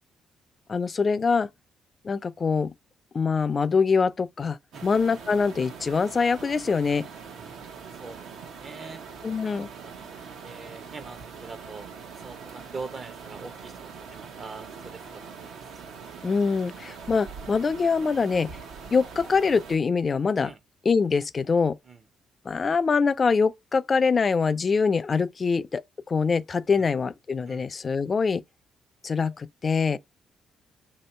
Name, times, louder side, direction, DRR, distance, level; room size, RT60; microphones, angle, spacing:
voice 1, 0.7-1.5 2.0-2.7 3.1-7.1 9.2-9.7 16.2-18.6 18.9-20.5 20.9-21.8 22.5-28.4 29.0-30.0, left 5 dB, 35° left, 0.3 m, -24 dB
sound 1, 4.7-19.8, right 6 dB, 85° right, 0.9 m, -43 dB
voice 2, 7.9-9.3 9.6-10.1 10.4-11.9 12.2-16.0 16.8-17.0 20.4-20.6 21.8-22.0 26.8-26.9 27.5-27.7, right 4 dB, 35° right, 0.6 m, -44 dB
2.9 x 2.8 x 4.3 m
cardioid pair, 90°, 0 cm